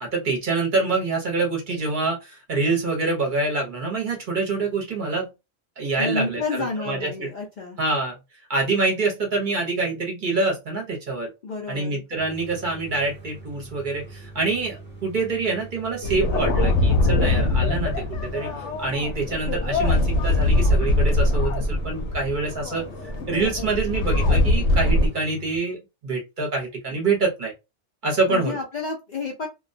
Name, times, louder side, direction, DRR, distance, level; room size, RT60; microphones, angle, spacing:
voice 1, 0.0-5.3 5.8-7.3 7.8-8.2 8.5-11.3 11.7-18.5 18.8-22.9 23.3-25.8 26.0-27.5 28.0-28.6, right 3 dB, 50° right, -1 dB, 0.8 m, -26 dB
voice 2, 6.0-7.8 11.4-12.1 28.3-29.5, left 4 dB, 55° left, 0 dB, 0.5 m, -30 dB
sound 1, 12.1-25.6, right 2 dB, 10° right, 0.6 m, -43 dB
sound 2, 16.0-25.1, left 2 dB, 85° left, 0.9 m, -22 dB
2.3 x 2.1 x 2.5 m, 0.25 s
omnidirectional pair, 1.2 m